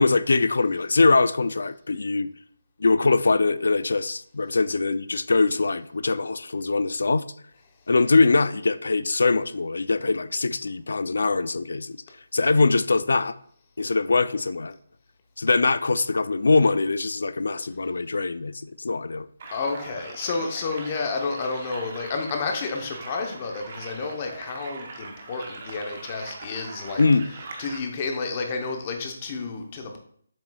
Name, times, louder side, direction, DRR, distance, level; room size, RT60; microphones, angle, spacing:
voice 1, 0.0-2.3 2.8-7.2 7.9-12.0 12.3-13.4 13.8-14.7 15.4-19.3 27.0-27.3, left 3 dB, 75° left, 0.3 m, -22 dB
sound 1, 19.4-27.8, right 3 dB, 35° right, 0.9 m, -41 dB
voice 2, 19.5-27.1 27.6-30.0, left 4 dB, 25° left, 0.7 m, -30 dB
7.3 x 6.0 x 2.3 m
hypercardioid pair, 175°, 0 cm